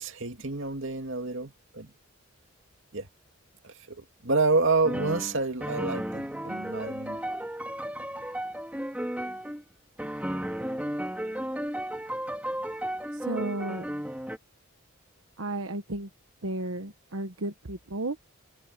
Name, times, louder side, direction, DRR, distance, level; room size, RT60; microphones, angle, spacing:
voice 1, 0.0-1.9 2.9-3.1 3.6-7.3, right 3 dB, 65° right, 2.5 m, -29 dB
sound 1, 4.8-9.6 10.0-14.4, equal, 5° right, 2.6 m, -34 dB
voice 2, 13.1-13.8 15.4-16.1 16.4-18.3, right 2 dB, 80° right, 1.2 m, -33 dB
head